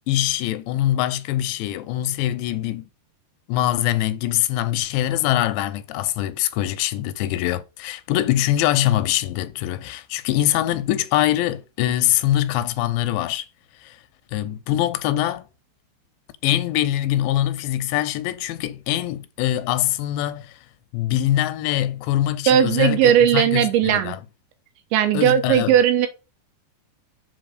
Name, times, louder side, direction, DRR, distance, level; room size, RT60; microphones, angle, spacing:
voice 1, 0.1-2.9 3.5-13.5 13.8-14.0 14.3-15.5 16.4-20.6 20.9-24.2 25.1-25.8, left 13 dB, 85° left, 2.8 m, -23 dB
voice 2, 22.5-24.2 24.9-26.1, right 10 dB, 85° right, 3.4 m, -17 dB
7.8 x 3.9 x 6.4 m
omnidirectional pair, 5.1 m